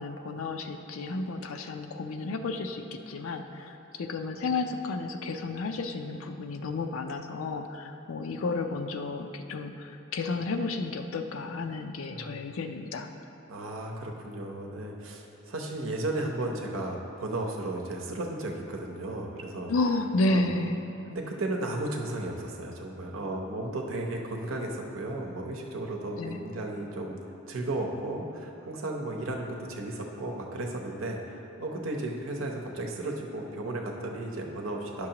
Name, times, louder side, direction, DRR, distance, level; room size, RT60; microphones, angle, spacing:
voice 1, 0.0-13.1 19.7-20.8 26.2-26.4, left 3 dB, 90° left, 6 dB, 0.4 m, -32 dB
voice 2, 12.1-12.4 13.5-19.7 20.3-20.4 21.1-27.2 27.5-35.1, right 2 dB, 85° right, 0 dB, 0.9 m, -34 dB
10.0 x 6.1 x 2.9 m, 2.8 s
head